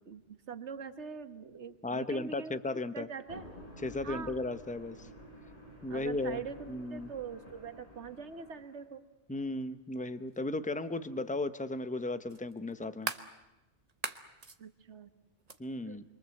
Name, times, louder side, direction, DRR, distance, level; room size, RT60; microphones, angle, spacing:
voice 1, 0.0-2.5 2.9-3.5 4.0-4.3 5.9-9.0 14.6-15.1 15.9-16.0, right 6 dB, 90° right, 10 dB, 1.6 m, -43 dB
voice 2, 1.8-3.1 3.8-5.1 5.8-6.4 6.7-7.1 9.3-13.1 15.6-16.0, left 2 dB, 10° left, 11 dB, 0.9 m, -35 dB
sound 1, 3.2-8.8, equal, 35° left, 5.5 m, -50 dB
sound 2, 10.3-10.4 12.3-13.3 13.9-14.6 15.5-15.6, right 4 dB, 35° right, 1.2 m, -39 dB
29.0 x 23.0 x 7.8 m, 1.0 s
omnidirectional pair, 1.1 m